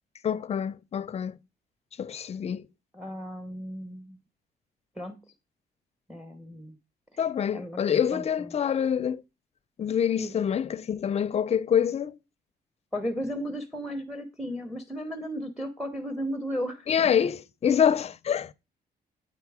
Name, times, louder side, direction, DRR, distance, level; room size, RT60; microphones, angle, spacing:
voice 1, 0.2-1.4 2.0-2.7 7.2-9.2 9.8-12.2 16.9-18.5, left 8 dB, 40° left, 0.5 m, -26 dB
voice 2, 2.9-4.2 5.0-5.2 6.1-6.8 7.1-7.2 7.5-8.5 10.2-10.4 12.9-17.1, equal, ahead, 0.9 m, -35 dB
8.5 x 4.5 x 4.8 m
cardioid pair, 105°, 17 cm